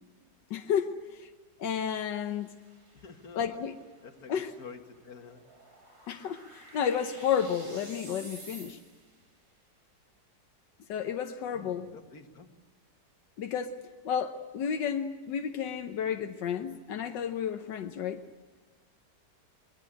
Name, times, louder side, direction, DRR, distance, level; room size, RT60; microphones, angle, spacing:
voice 1, 0.5-1.3 1.6-2.5 3.3-3.7 4.3-4.5 6.1-8.8 10.9-11.9 13.4-18.2, left 8 dB, 90° left, 6 dB, 1.6 m, -32 dB
sound 1, 1.8-9.2, right 2 dB, 60° right, 4.4 m, -52 dB
voice 2, 2.9-3.6 4.0-5.4 11.5-12.5, left 5 dB, 60° left, 4 dB, 2.3 m, -48 dB
23.5 x 21.0 x 8.9 m, 1.3 s
omnidirectional pair, 1.9 m